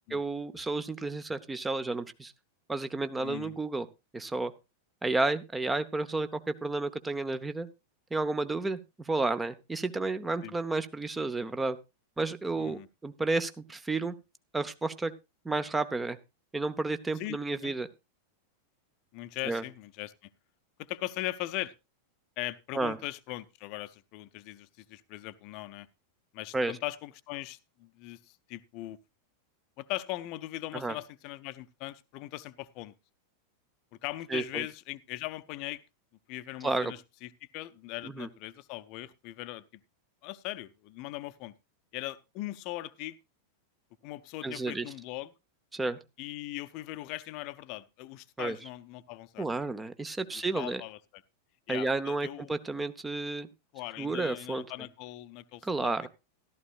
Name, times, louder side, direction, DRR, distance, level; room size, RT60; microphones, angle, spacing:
voice 1, 0.1-2.3 2.7-3.9 4.1-4.5 5.0-7.7 8.1-11.8 12.2-14.1 14.5-15.1 15.4-16.2 16.5-17.9 19.5-19.6 22.7-23.0 26.5-26.8 30.7-31.0 34.3-34.6 36.6-36.9 38.0-38.3 44.4-44.9 45.7-46.0 48.4-48.6 49.4-50.8 51.7-53.5 54.0-54.6 55.6-56.1, right 3 dB, 10° right, 12 dB, 0.8 m, -31 dB
voice 2, 3.2-3.5 10.4-10.5 12.6-12.9 17.2-17.7 19.1-20.3 20.8-21.7 22.4-25.9 26.3-29.0 29.8-32.9 34.0-35.8 36.3-39.8 40.2-41.5 41.9-43.2 44.0-45.3 46.2-49.5 50.5-51.0 51.7-52.5 53.7-56.1, left 17 dB, 45° left, 14 dB, 0.7 m, -40 dB
14.0 x 12.5 x 2.4 m, 0.25 s
figure-of-eight pair, 90°, 0 cm